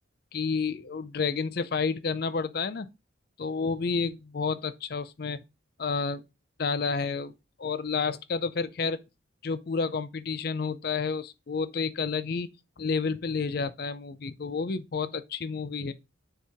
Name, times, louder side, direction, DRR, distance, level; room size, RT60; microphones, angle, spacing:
voice 1, 0.3-2.9 3.4-5.4 5.8-6.2 6.6-7.3 7.6-9.0 9.4-12.5 12.8-15.9, left 5 dB, 50° left, 0.5 m, -30 dB
6.8 x 4.6 x 3.5 m
head